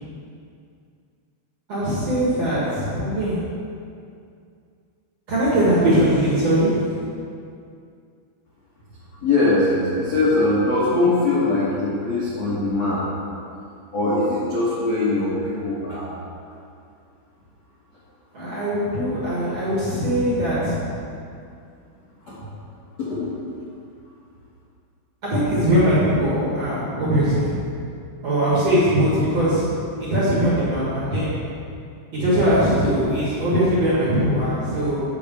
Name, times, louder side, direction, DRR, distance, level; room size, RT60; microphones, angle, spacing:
voice 1, 1.7-3.4 5.3-6.9 18.3-20.8 25.2-27.5 28.2-29.7 30.0-31.4 32.1-35.0, equal, 50° right, -10 dB, 2.1 m, -20 dB
voice 2, 9.2-13.0 13.9-16.0 23.0-23.3, left 2 dB, 70° left, -9 dB, 1.6 m, -21 dB
9.7 x 4.8 x 7.0 m, 2.4 s
omnidirectional pair, 5.9 m